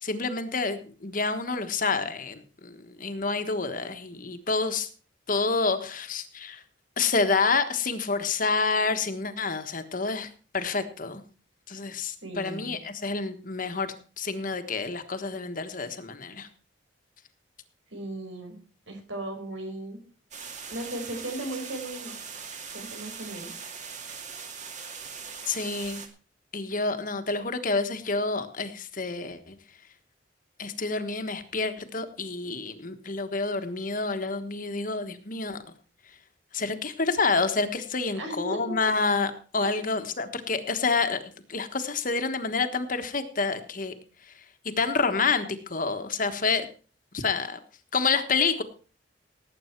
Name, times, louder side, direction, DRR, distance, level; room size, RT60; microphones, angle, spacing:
voice 1, 0.0-4.9 5.3-6.6 7.0-10.3 10.5-11.2 11.7-16.5 25.5-26.0 26.5-29.5 30.6-35.6 36.5-41.2 41.5-43.9 44.8-46.6 47.1-47.6 47.9-48.6, left 4 dB, 45° left, 9 dB, 1.4 m, -28 dB
voice 2, 12.2-12.8 17.9-18.6 18.9-20.0 20.7-22.2 22.7-23.5 38.1-38.8 39.6-39.8, right 1 dB, 90° right, 5 dB, 5.0 m, -36 dB
sound 1, 20.3-26.1, right 6 dB, 40° right, 2.1 m, -40 dB
18.0 x 8.7 x 4.5 m, 0.38 s
head